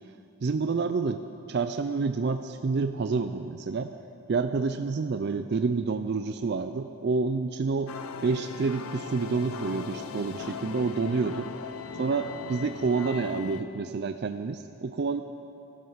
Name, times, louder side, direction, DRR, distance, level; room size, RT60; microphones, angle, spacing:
voice 1, 0.4-1.2 1.5-3.9 4.3-7.9 8.2-11.5 12.0-15.2, right 4 dB, 50° right, 8 dB, 0.4 m, -28 dB
sound 1, 7.9-13.6, left 5 dB, 85° left, 0.7 m, -39 dB
12.5 x 12.5 x 5.7 m, 2.8 s
head